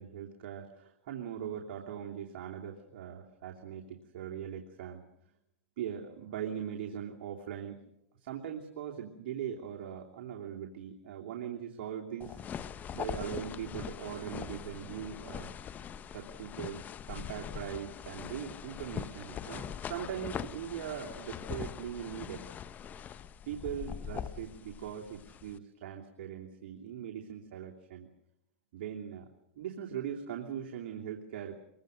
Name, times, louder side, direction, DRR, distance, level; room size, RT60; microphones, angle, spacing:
voice 1, 0.0-5.0 5.8-7.8 8.2-12.4 12.9-15.5 16.1-22.5 23.5-28.1 28.7-29.3 29.6-31.6, right 9 dB, 60° right, 0 dB, 2.9 m, -40 dB
sound 1, 12.2-25.6, left 8 dB, 25° left, 0.9 m, -42 dB
25.5 x 23.0 x 6.5 m, 0.86 s
hypercardioid pair, 130°, 7 cm